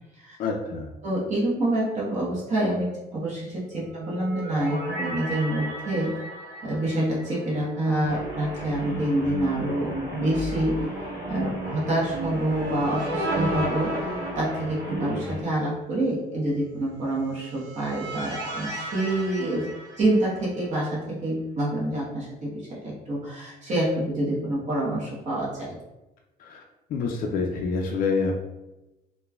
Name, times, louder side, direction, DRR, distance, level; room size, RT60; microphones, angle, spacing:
voice 1, 0.4-0.9 26.4-26.6 26.9-28.4, left 4 dB, 55° left, 1 dB, 0.4 m, -27 dB
voice 2, 1.0-6.2 6.6-10.9 11.3-19.7 20.0-25.8, right 1 dB, 45° right, -7 dB, 0.9 m, -27 dB
sound 1, 3.9-8.2 8.5-8.6 12.1-15.2 17.3-20.6, right 1 dB, 70° right, 1.1 m, -35 dB
sound 2, 8.0-15.4, right 1 dB, 20° right, 1.3 m, -33 dB
3.0 x 2.1 x 2.3 m, 1.0 s
cardioid pair, 110°, 17 cm